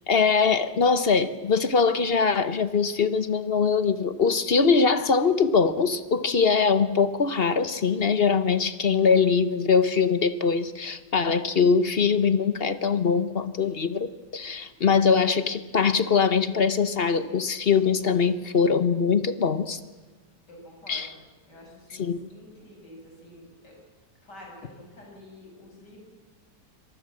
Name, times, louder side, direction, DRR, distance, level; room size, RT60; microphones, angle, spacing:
voice 1, 0.1-19.8 20.9-21.1 22.0-22.2, left 5 dB, 40° left, 13 dB, 1.0 m, -22 dB
voice 2, 9.0-9.5 14.7-14.9 20.5-23.7 24.2-26.0, left 1 dB, 75° left, 0 dB, 7.7 m, -49 dB
25.5 x 19.0 x 7.5 m, 1.3 s
omnidirectional pair, 1.8 m